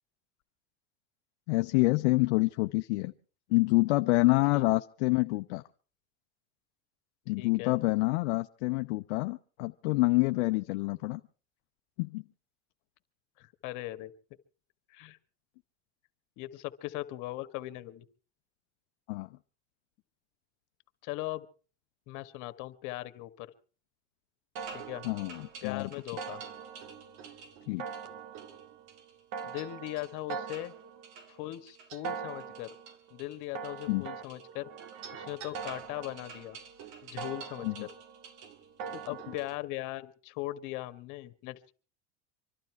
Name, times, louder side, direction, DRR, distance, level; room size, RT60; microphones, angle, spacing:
voice 1, 1.5-3.1 3.5-5.6 7.3-11.2 12.0-12.2 19.1-19.3 25.0-25.9 27.7-27.8 33.9-34.0 37.6-37.9, left 22 dB, 75° left, 0.7 m, -27 dB
voice 2, 7.4-7.8 13.4-14.1 14.9-15.2 16.4-18.0 21.0-21.5 22.1-23.5 24.7-25.0 25.6-26.4 29.4-30.7 31.3-32.7 33.1-34.7 35.1-36.6 37.0-37.7 39.1-41.7, left 17 dB, 60° left, 1.6 m, -39 dB
sound 1, 24.6-39.6, right 6 dB, 60° right, 2.1 m, -43 dB
25.5 x 12.0 x 4.6 m
supercardioid pair, 115°, 35 cm